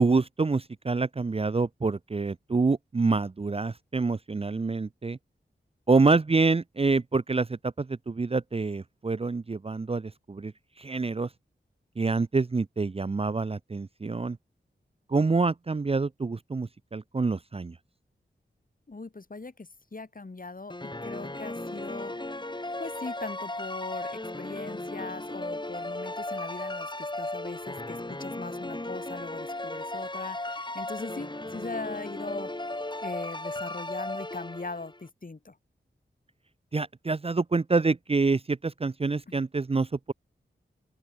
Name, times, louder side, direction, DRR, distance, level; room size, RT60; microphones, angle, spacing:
voice 1, 0.0-5.2 5.9-10.5 10.8-11.3 12.0-14.4 15.1-17.7 36.7-40.1, right 3 dB, 30° right, 0.6 m, -26 dB
voice 2, 18.9-20.8 21.0-22.1 22.8-32.5 33.0-35.5 39.3-39.4, left 3 dB, 45° left, 4.3 m, -40 dB
sound 1, 20.7-35.0, left 2 dB, 25° left, 4.4 m, -36 dB
open air
cardioid pair, 50°, 19 cm